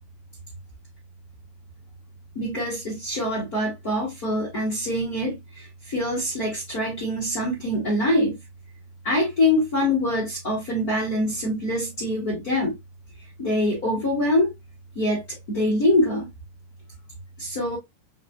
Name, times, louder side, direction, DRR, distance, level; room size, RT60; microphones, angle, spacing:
voice 1, 2.3-8.4 9.0-12.8 13.4-14.5 14.9-16.3 17.4-17.8, left 1 dB, 50° left, 1.0 m, -24 dB
7.8 x 2.7 x 2.3 m
omnidirectional pair, 4.8 m